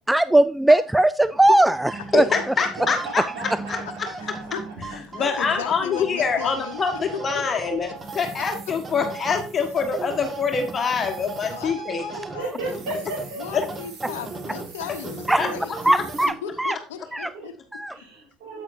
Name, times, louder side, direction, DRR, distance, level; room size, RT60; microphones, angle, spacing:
voice 1, 0.1-2.2 15.3-15.5 15.8-16.3 16.6-16.8 17.1-17.3 17.7-17.9, right 1 dB, 10° right, 15 dB, 0.3 m, -18 dB
sound 1, 1.6-16.6, right 3 dB, 25° right, 1.6 m, -37 dB
voice 2, 2.1-3.2 3.7-3.8 5.1-12.0 13.5-13.6 15.4-15.5, left 5 dB, 35° left, 4 dB, 1.5 m, -25 dB
voice 3, 2.8-4.5 5.5-5.6 12.4-13.4 17.3-17.5 17.9-18.6, right 3 dB, 75° right, -2 dB, 4.6 m, -34 dB
voice 4, 4.2-6.8 7.1-7.4 11.5-13.1 13.3-15.7 16.4-17.6, left 8 dB, 80° left, 6 dB, 0.8 m, -36 dB
sound 2, 4.7-5.5 7.6-11.7 12.0-12.1 12.4-16.3, right 4 dB, 55° right, 2.6 m, -47 dB
8.5 x 8.4 x 2.6 m, 0.36 s
hypercardioid pair, 70°, 0 cm